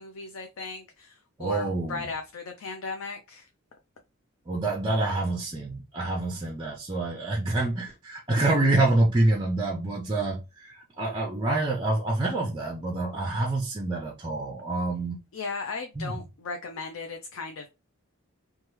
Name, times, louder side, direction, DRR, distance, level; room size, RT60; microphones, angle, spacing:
voice 1, 0.0-3.5 15.3-17.7, left 4 dB, 70° left, 0.4 m, -36 dB
voice 2, 1.4-2.0 4.5-15.2 16.0-16.1, right 2 dB, 20° right, 0.5 m, -27 dB
3.0 x 2.2 x 3.0 m
head